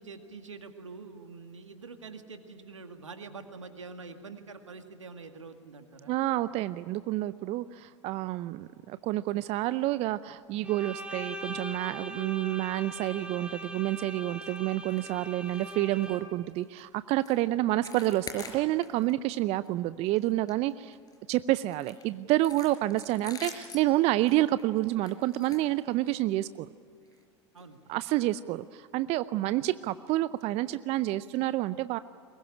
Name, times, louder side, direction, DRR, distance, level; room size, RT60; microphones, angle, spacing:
voice 1, 0.0-6.1 8.6-8.7 17.6-17.7 27.5-27.8 29.4-29.6, right 4 dB, 85° right, 6 dB, 2.1 m, -45 dB
voice 2, 6.1-21.0 21.3-26.7 27.9-32.0, right 16 dB, 40° right, 15 dB, 0.6 m, -29 dB
Bowed string instrument, 10.6-16.5, equal, 5° right, 3.2 m, -41 dB
sound 1, 14.9-15.1 15.4-15.7 16.0-16.2 16.6-16.8 17.2-17.4 17.7-19.1 19.5-19.7 20.1-21.2 21.7-26.3 27.1-27.2 27.6-27.7 28.1-28.2, left 4 dB, 25° left, 4.8 m, -46 dB
23.5 x 20.5 x 10.0 m, 2.1 s
hypercardioid pair, 90°, 15 cm